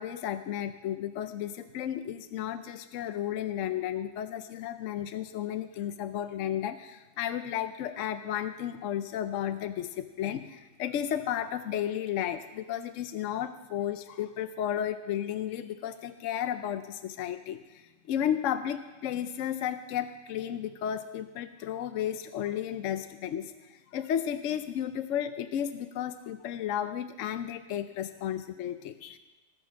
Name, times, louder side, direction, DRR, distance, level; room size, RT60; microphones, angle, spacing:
voice 1, 0.0-29.2, left 10 dB, 75° left, 10 dB, 0.9 m, -33 dB
20.0 x 6.8 x 6.1 m, 1.2 s
omnidirectional pair, 1.3 m